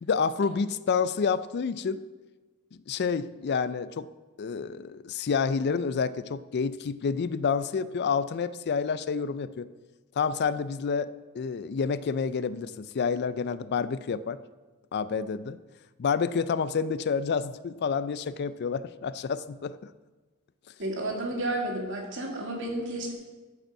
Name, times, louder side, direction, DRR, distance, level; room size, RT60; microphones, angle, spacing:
voice 1, 0.0-2.0 2.9-4.1 4.4-9.7 10.2-11.1 11.3-14.4 14.9-15.6 16.0-19.9, left 5 dB, 50° left, 16 dB, 0.4 m, -29 dB
voice 2, 20.8-23.1, right 1 dB, 60° right, 1 dB, 2.3 m, -31 dB
13.5 x 5.4 x 7.2 m, 1.3 s
head